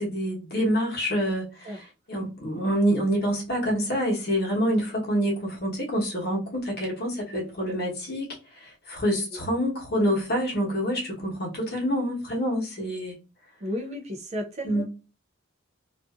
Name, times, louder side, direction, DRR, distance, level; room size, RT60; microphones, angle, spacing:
voice 1, 0.0-1.7 2.1-13.1 14.6-14.8, equal, 50° left, 1.0 m, -27 dB
voice 2, 13.6-14.8, left 1 dB, 30° right, 0.4 m, -33 dB
2.5 x 2.4 x 2.3 m
head